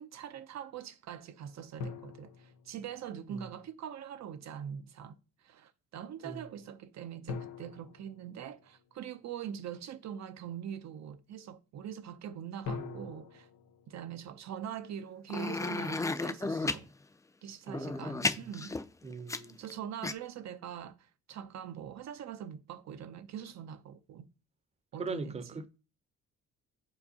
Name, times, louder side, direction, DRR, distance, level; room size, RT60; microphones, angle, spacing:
voice 1, 0.0-13.5 13.9-16.9 17.4-18.7 19.6-24.3 24.9-25.6, right 9 dB, 65° right, 0.6 m, -43 dB
sound 1, 1.8-3.4 7.3-9.2 12.6-14.9, left 5 dB, 70° left, 1.0 m, -44 dB
voice 2, 12.8-13.1 17.7-18.4 19.0-19.5 25.0-25.7, right 3 dB, 20° right, 0.7 m, -40 dB
sound 2, 15.3-16.8 17.7-19.7 20.0-20.1, left 3 dB, 10° left, 0.3 m, -33 dB
7.4 x 4.7 x 2.8 m
cardioid pair, 90°, 30 cm